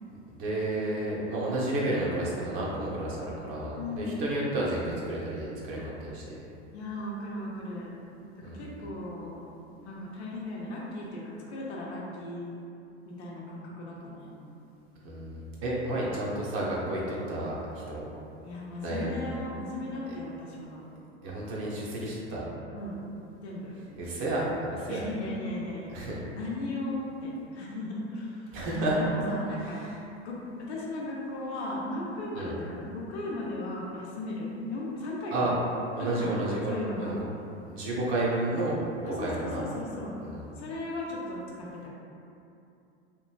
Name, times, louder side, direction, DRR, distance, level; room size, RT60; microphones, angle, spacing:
voice 1, 0.3-6.2 8.4-8.6 15.0-18.1 18.8-19.1 21.2-22.4 24.0-25.0 25.9-26.2 28.5-29.0 29.6-30.0 32.3-32.5 35.3-35.5 35.9-37.2 37.7-38.8 39.1-39.6 40.2-40.4, right 1 dB, 40° right, -5 dB, 0.7 m, -31 dB
voice 2, 3.8-4.1 6.7-7.9 8.4-9.4 9.8-11.2 11.5-12.4 13.0-14.3 18.4-20.8 22.7-23.0 23.4-23.7 24.9-29.8 30.2-35.6 36.0-36.3 36.7-37.1 39.0-40.1 40.6-41.9, left 1 dB, 75° left, -4 dB, 0.8 m, -36 dB
3.0 x 2.5 x 2.3 m, 2.7 s
hypercardioid pair, 105°, 33 cm